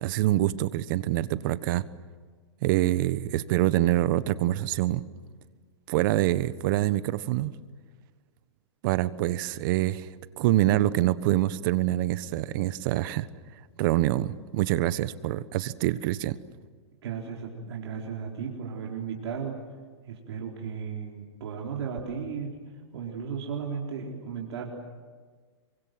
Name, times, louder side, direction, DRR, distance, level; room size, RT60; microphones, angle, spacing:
voice 1, 0.0-1.8 2.6-5.0 5.9-7.5 8.8-10.1 10.4-13.3 13.8-16.4, right 15 dB, 50° right, 15 dB, 1.2 m, -25 dB
voice 2, 17.0-19.6 20.0-22.5 22.9-24.7, right 6 dB, 70° right, -1 dB, 4.2 m, -35 dB
27.0 x 24.0 x 7.8 m, 1.5 s
hypercardioid pair, 140°, 15 cm